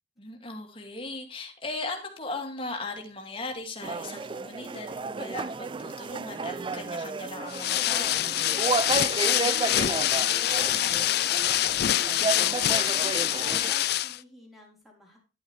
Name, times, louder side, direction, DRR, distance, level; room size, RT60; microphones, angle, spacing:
voice 1, 0.2-8.4, left 2 dB, 30° left, 3 dB, 2.4 m, -38 dB
sound 1, 3.8-13.7, right 4 dB, 30° right, 0.4 m, -32 dB
sound 2, 7.5-14.2, left 13 dB, 60° left, 0.4 m, -25 dB
voice 2, 9.4-13.0 13.4-15.2, left 1 dB, ahead, -1 dB, 4.0 m, -52 dB
11.0 x 8.8 x 3.3 m, 0.32 s
head